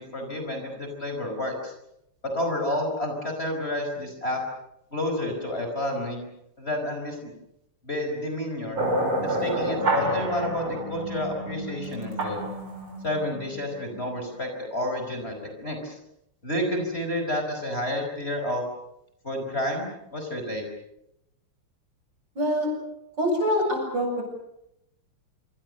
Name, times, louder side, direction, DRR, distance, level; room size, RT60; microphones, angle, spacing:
voice 1, 0.0-1.7 2.2-4.4 4.9-6.2 6.6-7.3 7.8-8.8 9.2-12.5 13.0-15.3 15.6-16.0 16.4-18.6 19.2-20.6, left 1 dB, 25° left, 3 dB, 5.5 m, -30 dB
sound 1, 8.8-14.1, right 1 dB, 70° right, 6.9 m, -29 dB
voice 2, 22.4-22.7 23.2-24.2, equal, 55° right, 2 dB, 8.2 m, -24 dB
26.0 x 26.0 x 6.7 m, 0.81 s
omnidirectional pair, 2.4 m